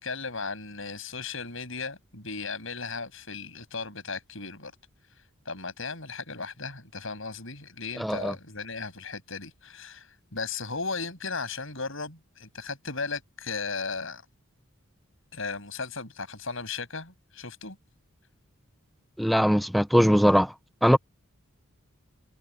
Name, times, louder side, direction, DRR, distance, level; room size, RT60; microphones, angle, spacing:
voice 1, 0.0-4.7 5.1-14.2 15.3-17.8, left 4 dB, 65° left, 7.2 m, -36 dB
voice 2, 8.0-8.3 19.2-20.5 20.8-21.0, equal, ahead, 0.7 m, -21 dB
head